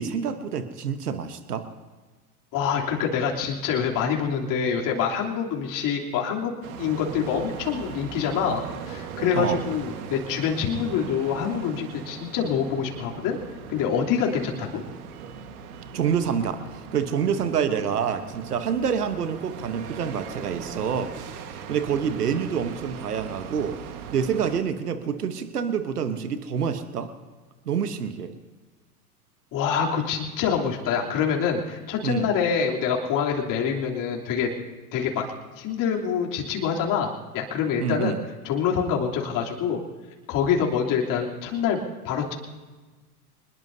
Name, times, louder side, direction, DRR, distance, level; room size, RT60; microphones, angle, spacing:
voice 1, 0.0-1.6 9.3-9.6 15.9-23.8 24.1-27.1 27.7-28.3 32.0-32.3 37.8-38.2, right 7 dB, 85° right, 9 dB, 1.2 m, -27 dB
voice 2, 2.5-6.5 6.8-13.4 13.7-14.8 29.5-34.5 34.9-35.3 35.5-38.2 38.4-39.8 40.3-41.8 42.0-42.3, left 7 dB, 45° left, -1 dB, 3.3 m, -26 dB
sound 1, 6.6-24.6, right 7 dB, 65° right, 1.7 m, -39 dB
25.0 x 21.0 x 2.8 m, 1.3 s
hypercardioid pair, 90°, 45 cm